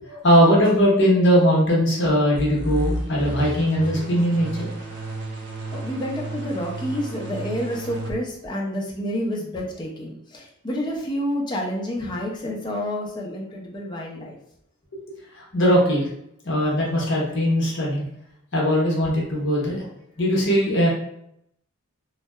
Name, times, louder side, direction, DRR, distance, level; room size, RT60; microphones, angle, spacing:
voice 1, 0.0-4.7 15.3-16.1 16.4-18.0 18.5-19.8 20.2-20.9, equal, 60° left, -3 dB, 0.8 m, -20 dB
sound 1, 2.3-8.1, right 1 dB, 55° right, 0.5 m, -32 dB
voice 2, 5.7-14.4, equal, 20° left, -1 dB, 0.4 m, -29 dB
2.7 x 2.1 x 2.2 m, 0.74 s
head